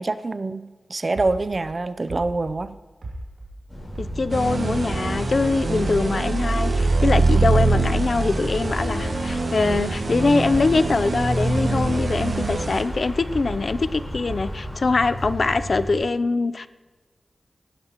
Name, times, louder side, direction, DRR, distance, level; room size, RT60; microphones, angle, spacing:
voice 1, 0.0-2.8, right 3 dB, 45° right, 12 dB, 0.5 m, -26 dB
sound 1, 1.1-4.5 4.9-7.4 7.7-12.0 12.4-14.9 15.2-15.9, right 1 dB, 85° right, 2.5 m, -37 dB
sound 2, 3.7-16.0, equal, 20° left, 3.9 m, -34 dB
voice 2, 4.0-16.7, left 3 dB, 60° left, 14 dB, 0.5 m, -23 dB
sound 3, 4.3-12.8, right 3 dB, 65° right, 1.7 m, -23 dB
17.5 x 11.0 x 3.0 m, 1.3 s
wide cardioid pair, 80°, 0 cm